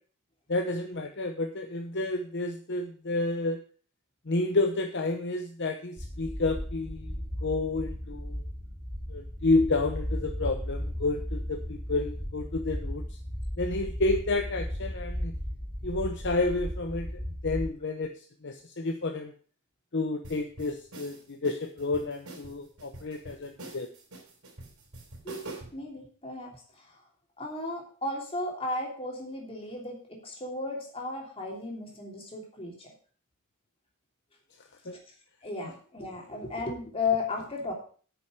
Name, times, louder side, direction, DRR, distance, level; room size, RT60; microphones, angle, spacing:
voice 1, 0.5-3.6 4.3-7.2 7.4-8.4 9.1-13.0 13.6-15.3 15.8-17.1 17.4-19.3 19.9-23.9 34.9-35.0, left 2 dB, 50° left, 5 dB, 0.8 m, -30 dB
sound 1, 6.0-17.7, equal, 25° right, 4.0 m, -35 dB
sound 2, 20.2-25.8, right 2 dB, 80° right, 3.5 m, -45 dB
voice 2, 25.2-27.0 27.4-32.9 34.9-35.0 35.4-37.7, left 3 dB, 25° left, 0 dB, 3.1 m, -35 dB
8.9 x 6.7 x 6.4 m, 0.42 s
head